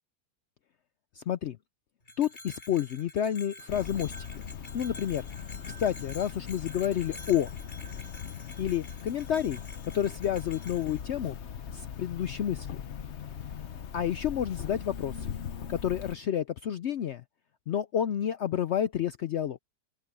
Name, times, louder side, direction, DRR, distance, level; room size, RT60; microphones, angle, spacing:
voice 1, 1.2-1.6 2.2-4.1 4.7-5.3 5.7-7.5 8.6-9.6 9.9-11.4 11.7-12.7 13.9-15.2 15.7-17.2 17.7-19.6, left 10 dB, 75° left, 0.6 m, -30 dB
Bell, 2.0-11.0, left 1 dB, 30° left, 3.9 m, -48 dB
Cricket, 3.7-16.1, left 8 dB, 50° left, 1.0 m, -40 dB
open air
omnidirectional pair, 1.8 m